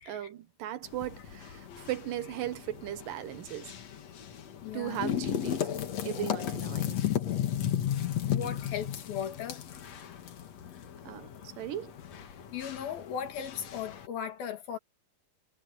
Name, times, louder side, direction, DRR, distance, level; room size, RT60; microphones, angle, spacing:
voice 1, 0.0-3.7 4.7-5.7 6.0-7.0 11.1-12.0, right 12 dB, 70° right, 2.6 m, -37 dB
sound 1, 0.8-14.1, left 10 dB, 55° left, 2.4 m, -35 dB
voice 2, 4.6-5.0 8.2-9.6 12.5-14.8, left 8 dB, 80° left, 4.2 m, -37 dB
omnidirectional pair, 4.2 m